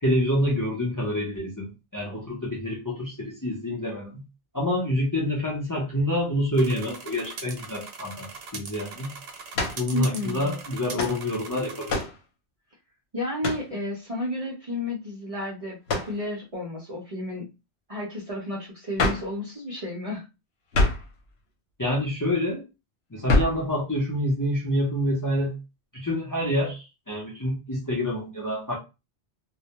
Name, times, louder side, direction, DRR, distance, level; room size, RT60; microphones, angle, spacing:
voice 1, 0.0-4.2 4.5-9.1 9.7-12.0 21.8-22.6 23.1-25.6 25.9-28.8, left 1 dB, 20° left, 0.6 m, -27 dB
sound 1, 6.5-12.0, right 4 dB, 70° right, 0.8 m, -41 dB
sound 2, 9.5-9.9 11.0-11.2 11.9-12.2 13.4-13.7 15.9-16.2 19.0-19.3 20.7-21.1 23.3-23.6, left 2 dB, 75° left, 0.9 m, -25 dB
voice 2, 9.9-10.6 13.1-17.5 17.9-20.2, left 1 dB, 40° right, 0.6 m, -32 dB
2.2 x 2.1 x 2.8 m
omnidirectional pair, 1.1 m